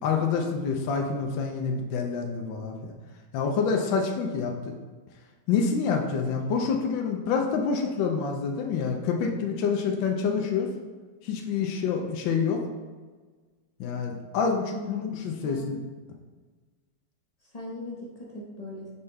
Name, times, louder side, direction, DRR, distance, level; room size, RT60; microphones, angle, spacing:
voice 1, 0.0-2.9 3.3-4.7 5.5-10.7 11.2-12.6 13.8-15.8, left 5 dB, 80° left, 2 dB, 1.4 m, -27 dB
voice 2, 14.7-15.0 15.4-15.7 17.5-18.9, left 2 dB, 25° left, -4 dB, 0.8 m, -39 dB
5.5 x 5.3 x 3.3 m, 1.4 s
omnidirectional pair, 2.1 m